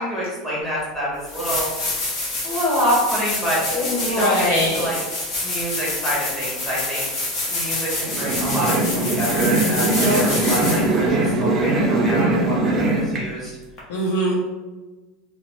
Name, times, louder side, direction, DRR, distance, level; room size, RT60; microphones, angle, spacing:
voice 1, 0.0-2.0 2.4-3.6 4.1-5.0 5.4-7.1 7.5-8.9 9.2-13.5, equal, ahead, -8 dB, 1.1 m, -26 dB
sound 1, 0.7-0.8 1.2-11.0 13.8-13.9, left 2 dB, 40° left, 0.8 m, -27 dB
voice 2, 3.7-4.9 10.0-10.6 13.9-14.3, equal, 90° left, -4 dB, 0.6 m, -22 dB
sound 2, 8.1-13.2, right 2 dB, 25° right, 0.5 m, -21 dB
2.9 x 2.0 x 2.9 m, 1.2 s
supercardioid pair, 155°, 0 cm